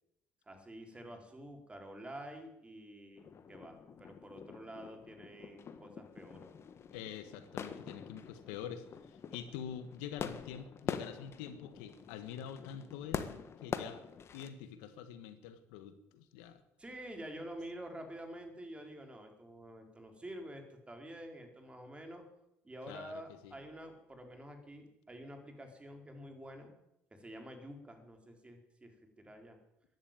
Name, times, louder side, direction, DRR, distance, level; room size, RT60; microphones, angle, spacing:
voice 1, 0.4-6.5 16.8-22.3 22.6-26.7 27.1-29.6, right 1 dB, 20° right, 4 dB, 4.5 m, -48 dB
sound 1, 3.2-14.5, left 6 dB, 45° left, 1.6 m, -45 dB
voice 2, 6.9-14.0 14.3-16.6 22.9-23.6, left 8 dB, 85° left, 11 dB, 1.5 m, -46 dB
14.0 x 11.0 x 9.1 m, 0.83 s
supercardioid pair, 75°, 6 cm